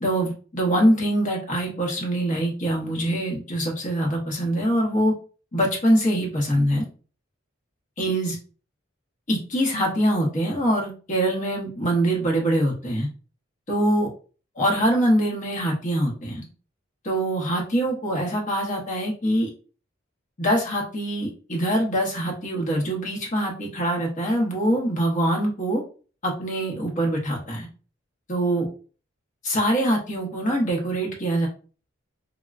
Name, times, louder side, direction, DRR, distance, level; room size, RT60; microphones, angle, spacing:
voice 1, 0.0-5.1 5.5-6.8 8.0-8.4 9.3-13.1 13.7-14.1 14.6-16.4 17.0-19.5 20.4-25.8 26.2-27.7 28.3-28.7 29.4-31.5, right 1 dB, 40° left, -1 dB, 0.9 m, -23 dB
3.5 x 2.2 x 2.4 m, 0.38 s
head